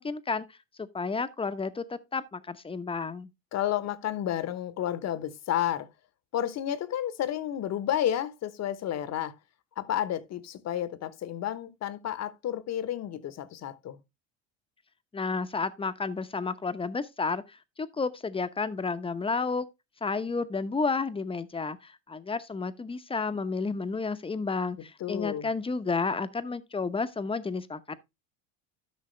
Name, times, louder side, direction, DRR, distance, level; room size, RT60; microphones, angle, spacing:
voice 1, 0.0-3.3 15.1-19.7 20.0-28.0, left 4 dB, 15° left, 0.9 m, -31 dB
voice 2, 3.5-5.9 6.3-9.3 9.8-14.0 25.0-25.5, left 11 dB, 45° left, 1.1 m, -31 dB
12.5 x 5.9 x 3.3 m
supercardioid pair, 100°, 37 cm